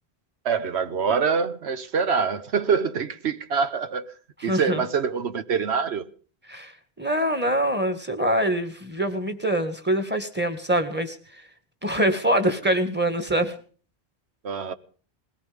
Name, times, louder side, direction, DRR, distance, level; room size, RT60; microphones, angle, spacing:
voice 1, 0.4-4.1 4.4-6.1 14.4-14.7, right 6 dB, 75° right, 1.2 m, -25 dB
voice 2, 4.4-4.8 6.5-6.7 7.0-11.2 11.8-13.6, right 1 dB, 10° right, 1.7 m, -24 dB
21.0 x 17.5 x 3.5 m
omnidirectional pair, 1.1 m